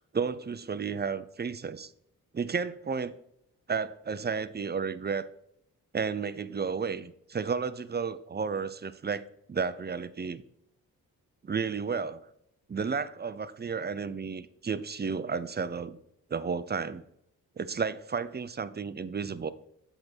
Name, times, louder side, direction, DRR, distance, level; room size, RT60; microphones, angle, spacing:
voice 1, 0.1-1.9 2.3-3.1 3.7-5.3 5.9-10.4 11.4-12.2 12.7-16.0 16.3-17.0 17.6-19.5, right 5 dB, 25° right, 0.6 m, -32 dB
7.8 x 3.7 x 5.9 m
cardioid pair, 55°, 37 cm